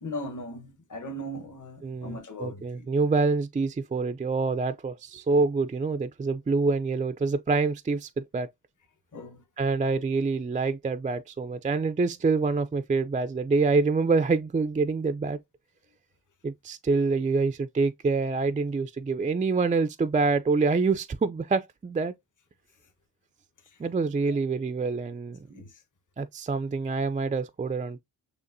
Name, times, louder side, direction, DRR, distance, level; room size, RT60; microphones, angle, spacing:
voice 1, 0.0-2.9 9.1-9.4 24.3-24.4 25.5-25.8, left 1 dB, 45° left, 1.2 m, -38 dB
voice 2, 1.8-8.5 9.6-15.4 16.4-22.1 23.8-25.4 26.2-28.0, right 4 dB, 20° right, 0.3 m, -26 dB
6.5 x 2.5 x 2.6 m
cardioid pair, 70°, 41 cm